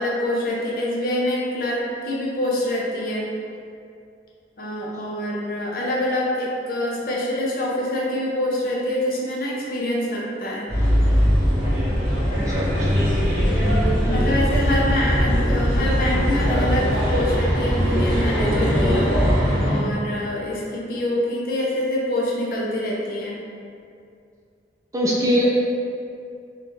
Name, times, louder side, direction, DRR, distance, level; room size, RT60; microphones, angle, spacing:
voice 1, 0.0-3.3 4.6-10.7 13.5-19.1 19.6-23.4, left 1 dB, 50° left, -4 dB, 0.5 m, -25 dB
sound 1, 10.7-19.8, equal, 35° left, 1.1 m, -20 dB
voice 2, 12.5-13.2 24.9-25.5, equal, 20° right, -4 dB, 0.3 m, -22 dB
2.7 x 2.3 x 3.6 m, 2.4 s
head